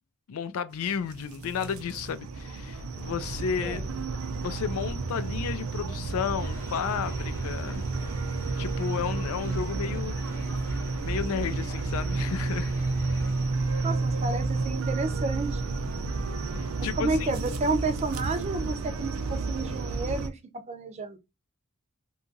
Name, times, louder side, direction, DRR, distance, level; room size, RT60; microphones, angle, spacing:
voice 1, 0.3-3.8 4.4-7.8 8.6-10.2 11.0-12.7 16.5-17.3, left 7 dB, 90° left, 0.4 m, -32 dB
sound 1, 0.8-20.3, right 3 dB, 85° right, 0.5 m, -31 dB
sound 2, 6.3-14.0, left 2 dB, 15° left, 0.7 m, -50 dB
voice 2, 13.8-15.7 16.8-20.4 20.7-21.2, right 3 dB, 30° right, 0.4 m, -31 dB
2.8 x 2.3 x 2.6 m
head